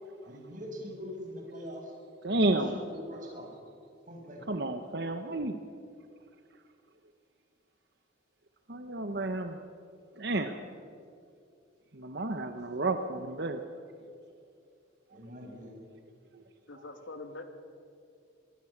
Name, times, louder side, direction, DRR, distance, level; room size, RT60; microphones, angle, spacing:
voice 1, 0.2-1.9 2.4-2.8 3.1-3.5 4.0-4.6 15.1-15.8, equal, 45° right, -1 dB, 7.6 m, -43 dB
voice 2, 2.2-2.8 4.5-5.6 8.7-9.6 10.2-10.6 11.9-13.6 16.3-16.4, right 2 dB, 60° right, 7 dB, 1.1 m, -31 dB
voice 3, 16.7-17.4, left 2 dB, 90° left, 6 dB, 2.7 m, -43 dB
26.0 x 21.0 x 7.4 m, 2.4 s
head